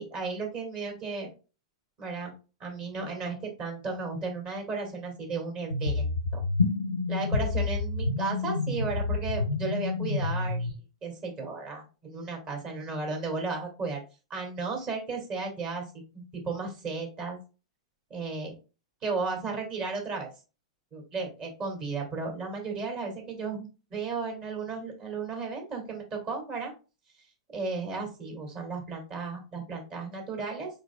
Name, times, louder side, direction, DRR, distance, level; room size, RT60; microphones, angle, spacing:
voice 1, 0.0-1.3 2.0-2.3 2.6-6.4 7.1-10.8 11.0-14.0 14.3-15.8 16.1-17.4 18.1-18.5 19.0-20.3 20.9-26.7 27.5-30.7, right 4 dB, 35° right, 1 dB, 2.2 m, -34 dB
sound 1, 5.7-10.7, left 3 dB, 85° left, 0.5 m, -28 dB
4.9 x 4.5 x 2.3 m, 0.32 s
figure-of-eight pair, 100°, 3 cm